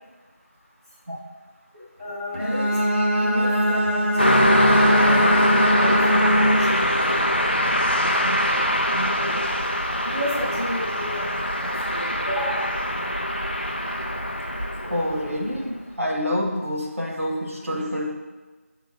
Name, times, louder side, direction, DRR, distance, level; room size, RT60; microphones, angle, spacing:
voice 1, 2.0-2.7 3.2-9.4 10.0-12.7, equal, 15° right, -12 dB, 1.1 m, -33 dB
Bowed string instrument, 2.3-6.8, equal, 40° right, 1.2 m, -21 dB
Car passing by, 4.2-15.6, equal, 40° left, 0.6 m, -23 dB
voice 2, 14.8-18.1, left 1 dB, 65° right, -1 dB, 1.3 m, -27 dB
6.0 x 3.9 x 4.8 m, 1.3 s
figure-of-eight pair, 180°, 8 cm